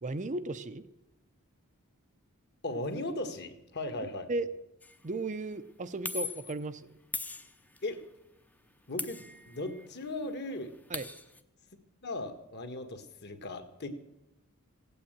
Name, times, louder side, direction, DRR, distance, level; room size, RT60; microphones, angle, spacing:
voice 1, 0.0-0.8 4.3-4.5 5.0-6.9 10.9-11.1, right 2 dB, 35° right, 11 dB, 0.6 m, -35 dB
voice 2, 2.6-4.3 7.8-8.0 8.9-10.7 12.0-13.9, left 2 dB, 50° left, 8 dB, 1.6 m, -37 dB
sound 1, 4.8-5.0 6.1-6.6 7.1-8.0 9.0-9.9 10.2-10.3 10.5-11.4, left 3 dB, 5° left, 0.7 m, -39 dB
16.0 x 8.7 x 8.8 m, 0.93 s
head